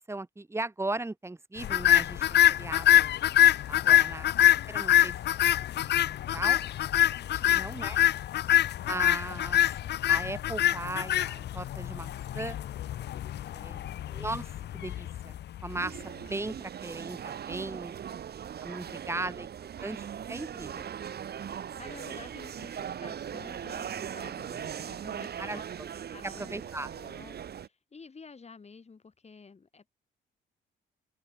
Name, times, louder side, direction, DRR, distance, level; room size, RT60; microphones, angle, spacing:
voice 1, 0.0-3.1 3.7-4.3 4.7-5.1 5.7-6.0 6.3-6.7 7.3-8.0 8.9-9.7 10.1-12.6 13.5-14.5 14.7-18.2 18.6-19.5 19.8-20.9 25.4-25.9 26.4-26.9, right 2 dB, 15° right, 2.0 m, -38 dB
sound 1, 1.6-16.0, left 12 dB, 60° left, 0.5 m, -25 dB
voice 2, 3.8-4.2 7.4-8.0 18.8-19.4 21.8-25.7 26.1-26.5 26.8-29.9, left 4 dB, 35° left, 6.6 m, -51 dB
sound 2, 15.7-27.7, right 8 dB, 55° right, 1.9 m, -39 dB
open air
cardioid pair, 90°, 20 cm